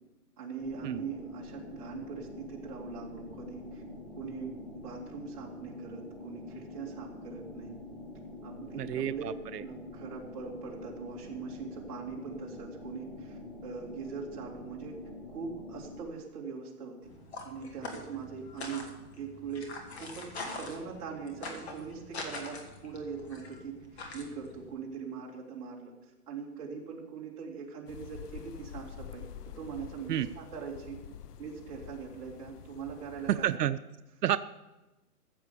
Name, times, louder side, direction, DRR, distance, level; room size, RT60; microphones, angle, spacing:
voice 1, 0.4-3.8 4.2-7.7 8.4-9.2 9.6-15.0 15.3-17.1 17.4-23.8 24.1-25.9 26.3-29.3 29.6-31.0 31.4-33.6, right 5 dB, 25° right, -4 dB, 2.6 m, -41 dB
sound 1, 0.6-16.0, left 2 dB, 25° left, 2.4 m, -46 dB
voice 2, 8.8-9.6 30.1-30.3 33.3-33.8 34.2-34.4, right 11 dB, 85° right, 12 dB, 0.7 m, -29 dB
sound 2, 17.0-24.7, left 2 dB, 45° left, 2.2 m, -44 dB
sound 3, 27.9-33.6, left 9 dB, 80° left, 0.7 m, -47 dB
15.0 x 7.5 x 6.8 m, 1.1 s
hypercardioid pair, 170°, 46 cm